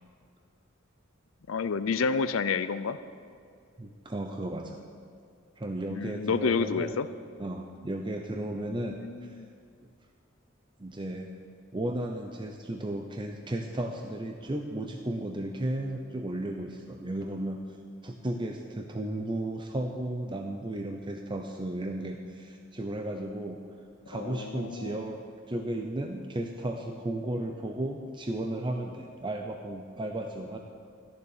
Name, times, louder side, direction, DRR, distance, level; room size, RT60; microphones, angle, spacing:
voice 1, 1.5-3.0 5.9-7.1 8.6-9.5 24.1-25.1, left 5 dB, 85° left, 13 dB, 0.5 m, -30 dB
voice 2, 3.8-4.8 5.6-7.0 7.4-9.4 10.8-11.3 11.7-17.6 18.0-23.6 24.1-25.2 25.5-30.6, right 1 dB, 25° right, 3 dB, 0.7 m, -34 dB
14.0 x 6.9 x 9.9 m, 2.3 s
head